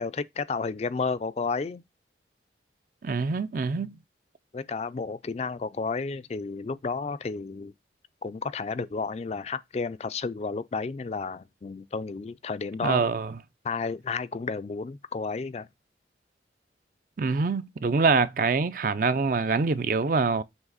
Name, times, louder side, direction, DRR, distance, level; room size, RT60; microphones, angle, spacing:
voice 1, 0.0-1.8 4.5-7.7 8.2-13.1 13.6-15.7, left 4 dB, 35° left, 0.3 m, -32 dB
voice 2, 3.0-4.0 12.8-13.4 17.2-20.4, right 4 dB, 50° right, 0.4 m, -25 dB
7.2 x 3.3 x 3.9 m
head